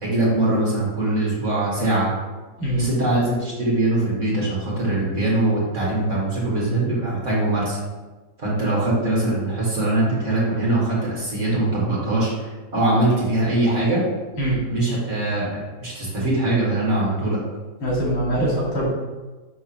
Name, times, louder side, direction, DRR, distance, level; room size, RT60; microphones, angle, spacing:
voice 1, 0.0-2.1 2.8-7.8 8.4-14.0 14.7-17.4, right 2 dB, 40° right, -6 dB, 2.1 m, -22 dB
voice 2, 17.8-18.9, right 1 dB, 90° left, -5 dB, 3.0 m, -22 dB
6.1 x 3.6 x 5.7 m, 1.2 s
omnidirectional pair, 2.1 m